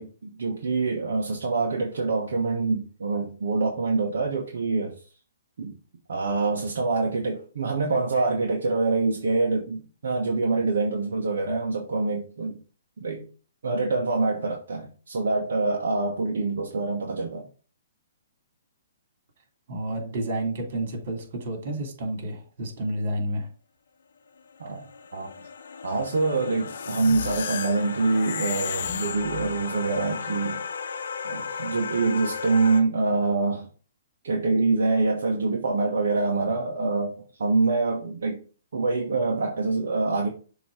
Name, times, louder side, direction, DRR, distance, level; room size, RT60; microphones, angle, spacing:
voice 1, 0.0-4.9 5.6-5.7 6.1-12.6 13.0-13.2 13.6-17.5 24.6-24.8 25.1-25.3 25.8-30.6 31.2-33.7 34.2-38.4 38.7-40.3, right 3 dB, 75° right, 1.3 m, -25 dB
voice 2, 19.7-23.5, right 1 dB, 55° right, 2.9 m, -30 dB
sound 1, 24.4-32.8, left 5 dB, 80° left, 0.8 m, -35 dB
sound 2, 26.7-29.9, left 9 dB, 60° left, 0.4 m, -34 dB
7.0 x 3.1 x 4.8 m
hypercardioid pair, 145°, 0 cm